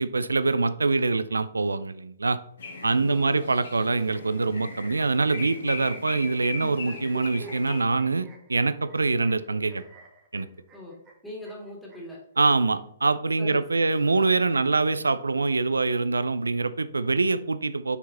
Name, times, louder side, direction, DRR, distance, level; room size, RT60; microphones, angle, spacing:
voice 1, 0.0-2.4 2.8-9.8 10.3-10.5 12.4-18.0, right 3 dB, 75° right, 14 dB, 0.4 m, -24 dB
sound 1, 2.6-7.8, left 3 dB, 60° left, 1.7 m, -39 dB
voice 2, 2.9-3.5 10.7-12.2 13.4-13.9, left 1 dB, 5° left, -4 dB, 2.4 m, -42 dB
sound 2, 6.5-12.7 13.7-14.8, right 3 dB, 20° right, 1.5 m, -48 dB
6.9 x 4.7 x 4.2 m, 0.70 s
figure-of-eight pair, 120°, 0 cm